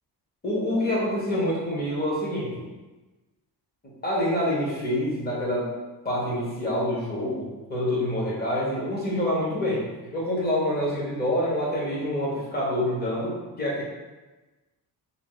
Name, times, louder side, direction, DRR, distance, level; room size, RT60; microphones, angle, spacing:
voice 1, 0.4-2.7 4.0-5.7 6.0-9.9 10.1-13.8, left 1 dB, 25° left, -6 dB, 0.9 m, -26 dB
3.6 x 2.3 x 3.8 m, 1.2 s
wide cardioid pair, 180°, 41 cm